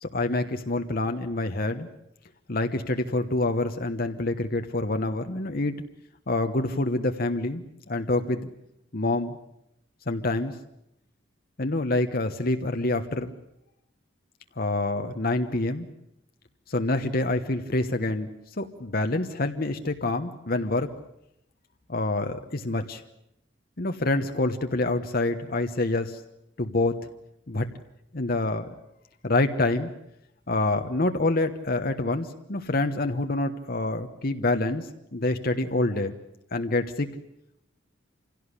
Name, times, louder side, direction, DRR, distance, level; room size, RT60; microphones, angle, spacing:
voice 1, 0.0-1.9 2.5-5.8 6.3-8.5 8.9-9.4 10.1-10.5 11.6-13.3 14.6-15.9 16.7-18.3 18.6-20.9 21.9-23.0 23.8-26.2 26.6-27.0 27.5-27.7 28.1-28.7 29.2-29.9 30.5-36.1 36.5-37.1, left 2 dB, 50° left, 6 dB, 1.2 m, -26 dB
26.5 x 17.0 x 9.8 m, 0.80 s
head